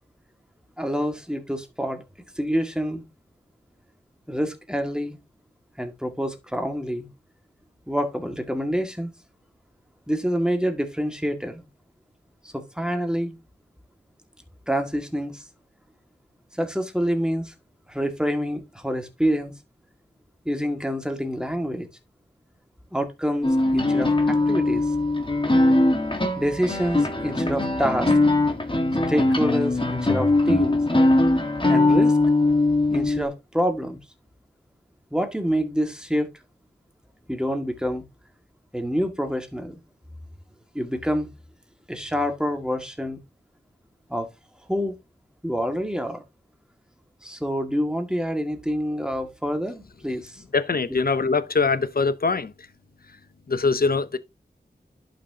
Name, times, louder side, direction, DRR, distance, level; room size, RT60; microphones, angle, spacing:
voice 1, 0.8-2.0 2.4-3.0 4.3-5.2 5.8-7.1 7.9-9.1 10.1-11.6 12.5-13.4 14.7-15.4 16.5-17.5 17.9-19.5 20.5-21.9 22.9-24.9 26.4-28.1 29.1-30.8 31.7-32.2 32.9-34.0 35.1-36.3 37.3-38.0 38.7-39.8 40.7-41.3 41.9-43.2 44.1-44.3 44.7-45.0 45.4-46.2 47.2-50.4 50.9-51.0, equal, 5° right, 1.9 m, -27 dB
sound 1, 23.4-33.2, left 2 dB, 30° left, 1.6 m, -21 dB
voice 2, 50.5-52.5 53.5-54.2, left 4 dB, 55° left, 0.8 m, -22 dB
11.0 x 6.0 x 2.8 m
wide cardioid pair, 45°, 18 cm